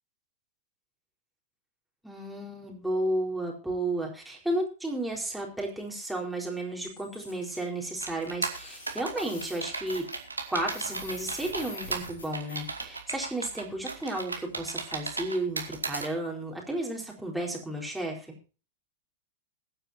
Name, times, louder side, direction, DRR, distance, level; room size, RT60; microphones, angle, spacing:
voice 1, 2.0-10.1 10.5-18.3, right 1 dB, 5° right, -1 dB, 4.4 m, -33 dB
sound 1, 6.8-7.6 8.2-8.3 8.6-12.8, left 2 dB, 75° left, 6.4 m, -45 dB
sound 2, 8.0-16.1, right 3 dB, 85° right, 2.3 m, -36 dB
21.5 x 9.3 x 2.8 m, 0.34 s
figure-of-eight pair, 100°, 0 cm